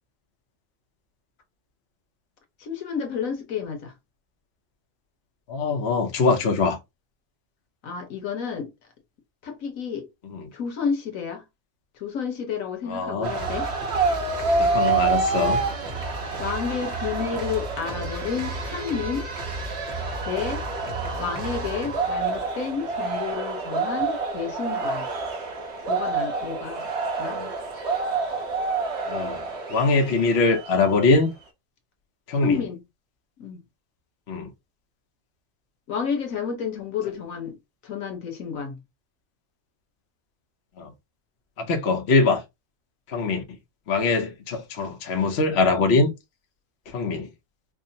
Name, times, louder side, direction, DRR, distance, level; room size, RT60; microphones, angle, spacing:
voice 1, 2.6-3.9 7.8-8.7 9.4-10.1 10.5-11.4 11.9-13.7 16.4-19.3 20.2-20.6 21.2-25.1 25.9-26.9 27.2-27.4 32.4-32.8 33.4-33.6 35.9-37.6 37.8-38.8, left 6 dB, 85° left, 1.4 m, -30 dB
voice 2, 5.5-6.8 10.3-10.5 12.8-13.3 14.6-15.6 27.3-27.5 29.1-31.3 32.3-32.6 34.3-34.5 40.8-40.9 41.6-42.4 43.1-43.4 43.9-46.1 46.9-47.3, left 3 dB, 55° left, 1.1 m, -22 dB
sound 1, 13.2-31.0, right 4 dB, 60° right, 1.2 m, -28 dB
4.9 x 2.1 x 2.6 m
omnidirectional pair, 1.4 m